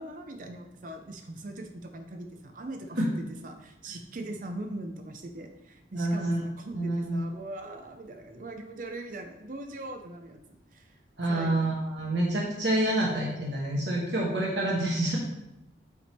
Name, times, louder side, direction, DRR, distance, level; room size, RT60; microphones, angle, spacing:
voice 1, 0.0-3.0 3.4-10.4 10.7-11.0 11.3-11.8, right 1 dB, 45° right, 5 dB, 0.6 m, -41 dB
voice 2, 5.9-6.4 6.7-7.3 11.2-15.2, right 1 dB, 75° right, -3 dB, 1.2 m, -27 dB
7.8 x 3.5 x 4.3 m, 0.90 s
head